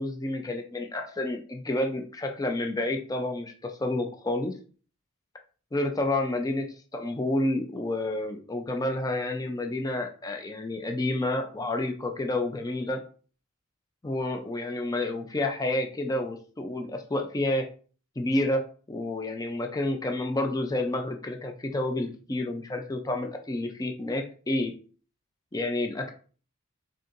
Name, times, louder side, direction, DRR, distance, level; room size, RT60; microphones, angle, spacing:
voice 1, 0.0-4.5 5.7-6.6 6.9-13.0 14.0-17.6 18.2-18.6 18.9-24.7 25.5-26.1, left 1 dB, 15° left, 4 dB, 0.5 m, -29 dB
4.1 x 3.7 x 2.5 m, 0.40 s
head